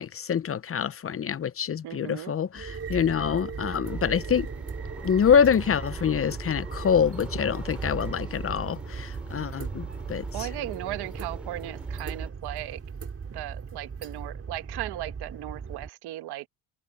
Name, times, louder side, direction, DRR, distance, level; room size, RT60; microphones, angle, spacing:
voice 1, 0.0-4.5 5.0-10.5, left 7 dB, 35° left, 0.7 m, -26 dB
voice 2, 1.8-2.3 10.3-12.8 13.3-16.5, right 15 dB, 85° right, 1.4 m, -36 dB
sound 1, 2.5-15.9, right 6 dB, 35° right, 4.9 m, -37 dB
sound 2, 3.8-12.3, equal, 5° right, 3.5 m, -42 dB
cardioid pair, 105°, 38 cm